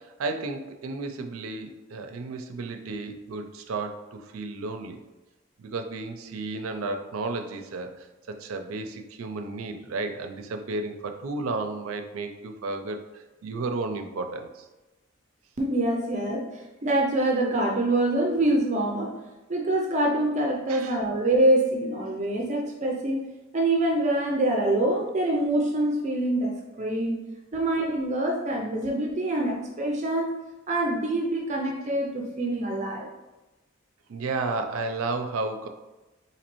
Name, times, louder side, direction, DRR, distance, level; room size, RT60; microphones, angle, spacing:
voice 1, 0.0-5.0 5.6-14.7 20.7-20.9 34.1-35.7, right 3 dB, 90° right, 6 dB, 0.4 m, -33 dB
voice 2, 15.6-19.2 19.5-23.2 23.5-27.2 27.5-30.3 30.7-33.1, right 1 dB, 35° right, 0 dB, 0.4 m, -25 dB
4.1 x 2.8 x 3.0 m, 1.1 s
head